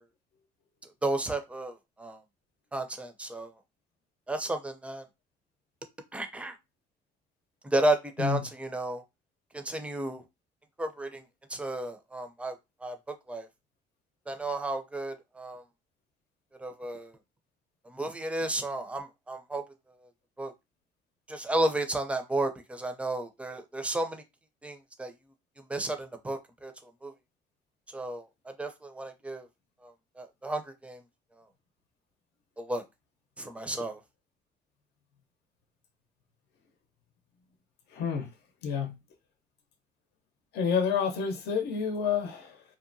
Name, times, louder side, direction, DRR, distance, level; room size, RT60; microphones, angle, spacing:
voice 1, 1.0-2.2 2.7-3.5 4.3-5.0 6.1-6.5 7.6-9.0 9.5-10.2 10.8-11.2 11.5-12.5 12.8-13.0 13.3-13.5 14.3-15.6 16.6-17.1 17.9-19.6 20.4-20.5 21.3-24.2 24.6-25.1 25.7-26.7 27.0-27.1 27.9-28.2 28.6-29.5 29.8-31.0 32.6-32.8 33.4-34.0, right 1 dB, 5° right, 0.5 m, -32 dB
voice 2, 37.9-38.3 38.6-38.9 40.5-42.6, left 6 dB, 75° left, 0.7 m, -29 dB
2.8 x 2.1 x 2.6 m
cardioid pair, 110°, 17 cm